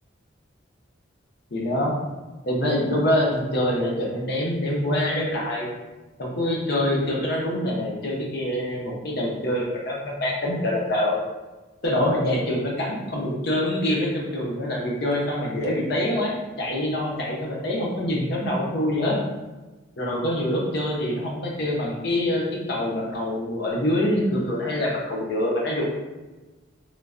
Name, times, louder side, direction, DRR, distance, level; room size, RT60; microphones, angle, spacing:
voice 1, 1.5-2.0 2.4-5.7 6.2-11.2 11.8-19.2 20.0-25.8, left 1 dB, 55° left, -2 dB, 0.6 m, -25 dB
3.1 x 2.2 x 2.4 m, 1.2 s
head